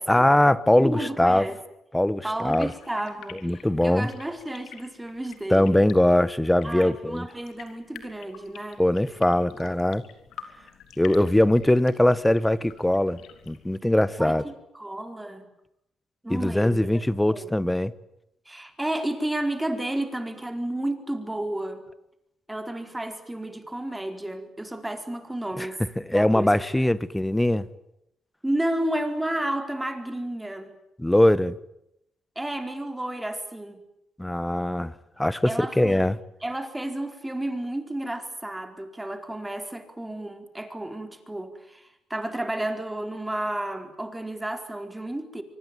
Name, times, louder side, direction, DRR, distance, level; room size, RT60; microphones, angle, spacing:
voice 1, 0.1-1.5 1.9-2.7 3.4-4.1 5.5-7.2 8.8-10.0 11.0-13.2 13.5-14.4 16.3-17.9 25.6-25.7 26.0-27.6 31.0-31.5 34.2-34.9 35.2-36.2, left 1 dB, 5° left, 1.3 m, -21 dB
voice 2, 0.7-1.6 2.2-5.9 6.6-8.8 14.2-15.4 16.2-16.8 17.3-17.5 18.5-21.8 22.5-25.8 26.1-26.9 28.4-30.7 32.4-33.8 35.4-36.1 36.4-45.4, right 1 dB, 10° right, 4.4 m, -32 dB
sound 1, 2.5-13.8, left 9 dB, 80° left, 3.7 m, -48 dB
24.5 x 24.5 x 9.3 m
cardioid pair, 90°, 0 cm